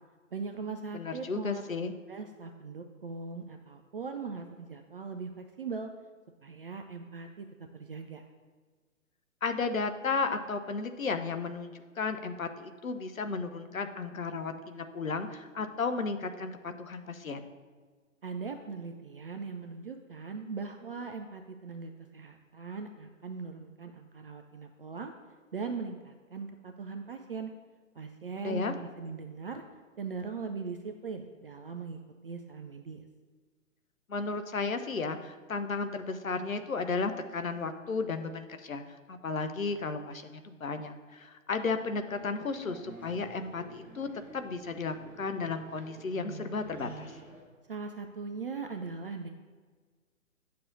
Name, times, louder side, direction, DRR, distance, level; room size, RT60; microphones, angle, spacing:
voice 1, 0.3-1.6 2.1-5.9 6.4-7.5 7.8-8.2 18.2-25.1 25.5-27.5 28.0-29.6 30.0-33.0 47.7-49.3, right 4 dB, 45° right, 5 dB, 0.4 m, -40 dB
voice 2, 0.9-1.9 9.4-17.4 28.4-28.7 34.1-44.1 44.3-47.1, left 4 dB, 80° left, 8 dB, 0.8 m, -34 dB
sound 1, 42.1-47.4, right 2 dB, 5° right, 0.6 m, -50 dB
10.0 x 6.7 x 2.6 m, 1.5 s
figure-of-eight pair, 125°, 40 cm